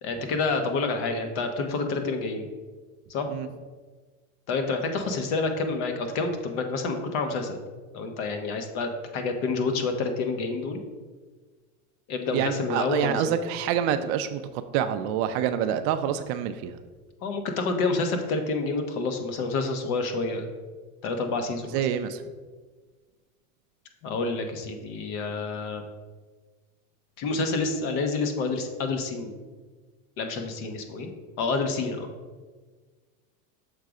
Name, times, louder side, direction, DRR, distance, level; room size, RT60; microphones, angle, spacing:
voice 1, 0.0-2.5 3.1-3.3 4.5-7.6 7.9-10.8 12.1-13.2 17.2-20.5 21.0-21.8 24.0-25.8 27.2-29.3 30.2-31.1 31.4-32.1, left 3 dB, 50° left, 5 dB, 1.1 m, -28 dB
voice 2, 12.3-16.8 21.7-22.2, right 9 dB, 50° right, 9 dB, 0.5 m, -27 dB
6.6 x 3.9 x 4.8 m, 1.4 s
supercardioid pair, 130°, 44 cm